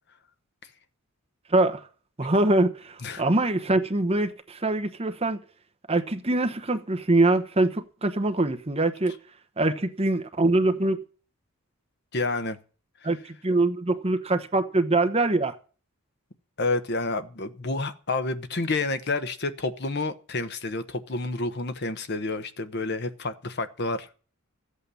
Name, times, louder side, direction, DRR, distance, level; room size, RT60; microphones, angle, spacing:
voice 1, 1.5-1.8 2.2-5.4 5.9-9.1 9.6-11.0 13.0-15.5, right 2 dB, 25° right, 1.0 m, -23 dB
voice 2, 12.1-12.6 16.6-24.1, left 3 dB, 50° left, 1.0 m, -29 dB
14.5 x 8.4 x 6.9 m
head